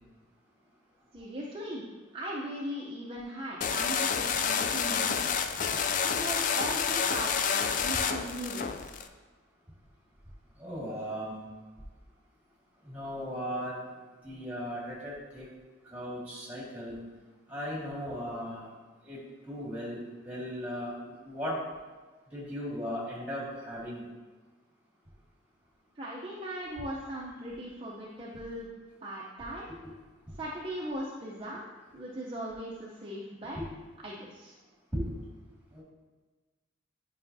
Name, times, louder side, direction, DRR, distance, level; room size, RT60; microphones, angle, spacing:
voice 1, 1.1-1.8 2.1-5.4 6.0-8.9 26.0-28.7 29.0-29.7 30.4-31.6 31.9-33.6 34.0-34.6, right 1 dB, 25° right, -5 dB, 0.7 m, -38 dB
sound 1, 3.6-9.1, left 6 dB, 40° left, 0.3 m, -29 dB
voice 2, 10.6-11.4 12.8-13.8 14.2-15.5 15.9-17.0 17.5-18.7 19.0-21.6 22.3-24.0 29.7-29.9 30.3-30.4 33.5-33.7 34.9-35.1 35.7-35.8, equal, 10° right, -6 dB, 1.9 m, -37 dB
9.4 x 5.6 x 2.7 m, 1.3 s
head